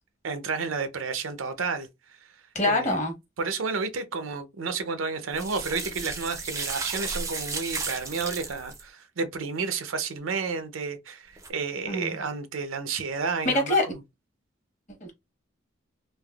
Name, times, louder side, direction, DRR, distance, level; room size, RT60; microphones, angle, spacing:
voice 1, 0.2-2.3 2.6-3.0 3.4-14.0, right 4 dB, 85° right, 0.6 m, -31 dB
voice 2, 2.5-3.1 11.9-12.2 13.4-13.8 15.0-15.1, left 2 dB, 35° left, 1.0 m, -24 dB
sound 1, 5.3-8.8 11.4-11.5, right 3 dB, 15° right, 0.4 m, -34 dB
3.3 x 2.1 x 2.3 m
head